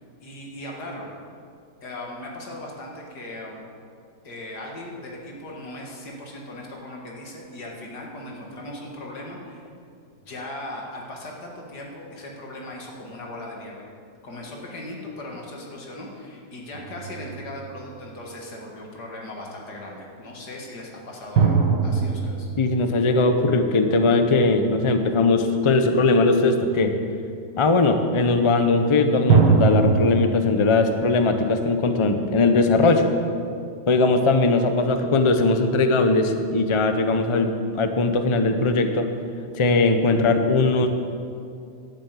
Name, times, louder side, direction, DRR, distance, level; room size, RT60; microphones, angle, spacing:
voice 1, 0.2-1.1 1.8-3.6 4.2-9.6 10.3-13.9 14.2-22.5, left 1 dB, 70° left, -1 dB, 2.5 m, -38 dB
sound 1, 16.7-18.4 21.4-24.0 29.3-32.3, right 5 dB, 80° right, 2.0 m, -23 dB
voice 2, 22.6-26.9 27.6-33.1 33.9-37.5 37.7-39.1 39.5-40.9, left 3 dB, 55° left, 7 dB, 0.3 m, -20 dB
11.5 x 7.6 x 8.4 m, 2.4 s
omnidirectional pair, 1.8 m